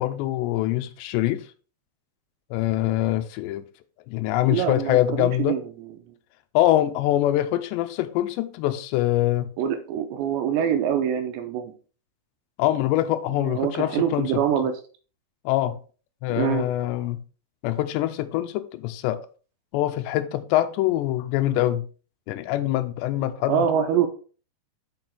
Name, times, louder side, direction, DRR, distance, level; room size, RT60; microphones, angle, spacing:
voice 1, 0.0-1.4 2.5-3.6 4.1-5.6 6.5-9.5 12.6-14.4 15.5-15.8 16.2-17.2 17.6-19.3 19.7-21.8 22.3-23.7, left 14 dB, 85° left, 2.7 m, -24 dB
voice 2, 4.5-5.9 9.6-11.7 13.4-14.8 16.4-16.7 23.5-24.1, right 8 dB, 85° right, 2.9 m, -25 dB
7.1 x 5.9 x 4.5 m
omnidirectional pair, 5.2 m